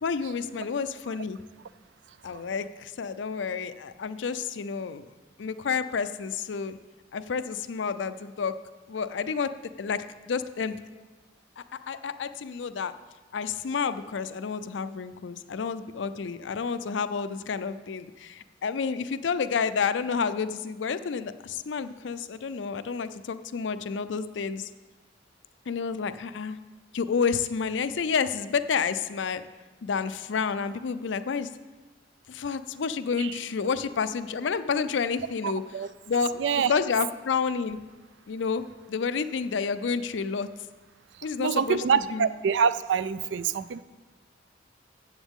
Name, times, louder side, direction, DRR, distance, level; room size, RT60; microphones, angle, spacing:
voice 1, 0.0-1.4 2.2-5.1 5.4-6.8 7.1-8.5 8.9-9.5 9.8-10.8 11.6-12.9 13.3-24.7 25.7-26.6 26.9-29.4 29.8-31.5 32.3-35.6 36.1-36.3 36.7-37.8 38.3-40.5 41.2-42.3, left 5 dB, 75° left, 12 dB, 0.5 m, -30 dB
voice 2, 35.4-35.9 36.4-36.7 41.4-43.8, right 6 dB, 70° right, 15 dB, 0.4 m, -26 dB
14.5 x 8.0 x 3.6 m, 1.3 s
head